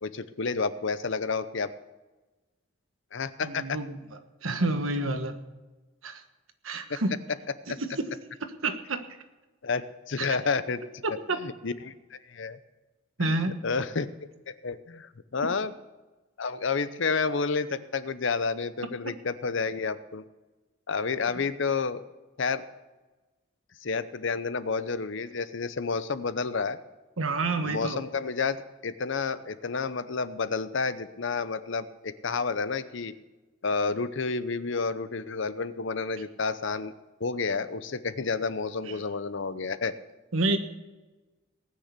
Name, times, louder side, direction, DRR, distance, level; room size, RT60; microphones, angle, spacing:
voice 1, 0.0-1.7 3.1-3.8 6.9-7.0 7.7-7.8 9.6-10.8 11.1-12.6 13.2-14.1 14.5-15.7 16.4-20.2 20.9-22.0 22.4-22.6 23.8-26.8 27.6-33.1 33.6-36.9 37.2-39.9, left 4 dB, 65° left, 13 dB, 0.7 m, -30 dB
voice 2, 3.4-3.9 4.4-5.4 6.0-6.2 6.6-7.2 7.7-8.1 8.6-9.0 10.2-10.4 11.0-11.4 13.2-13.6 27.2-28.0 38.8-39.0 40.3-40.6, right 2 dB, 90° right, 7 dB, 1.3 m, -29 dB
18.5 x 6.6 x 8.2 m, 1.2 s
head